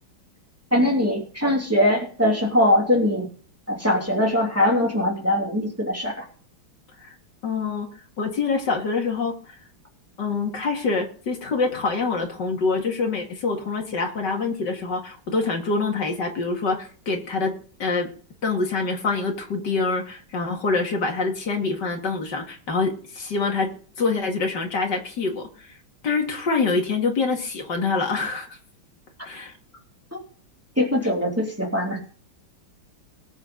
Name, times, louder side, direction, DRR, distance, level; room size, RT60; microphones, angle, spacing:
voice 1, 0.7-3.3 3.7-6.2 30.1-30.2 30.8-32.0, left 1 dB, 5° right, -2 dB, 3.2 m, -21 dB
voice 2, 7.4-7.9 8.2-9.6 10.2-17.5 17.8-18.1 18.4-23.7 24.0-25.7 26.0-28.6 29.2-29.6, left 4 dB, 55° left, 2 dB, 2.7 m, -25 dB
20.0 x 7.9 x 3.9 m, 0.43 s
omnidirectional pair, 2.2 m